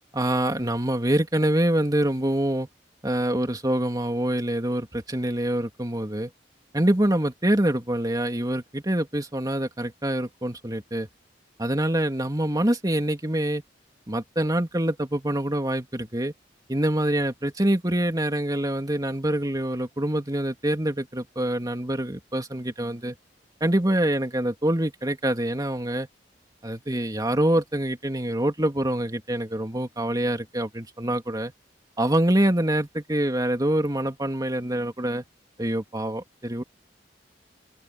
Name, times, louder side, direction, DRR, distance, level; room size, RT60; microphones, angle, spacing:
voice 1, 0.1-2.7 3.0-6.3 6.7-11.1 11.6-13.6 14.1-16.3 16.7-23.2 23.6-26.1 26.6-31.5 32.0-35.2 35.6-36.6, right 1 dB, 20° right, 2.9 m, -25 dB
open air
head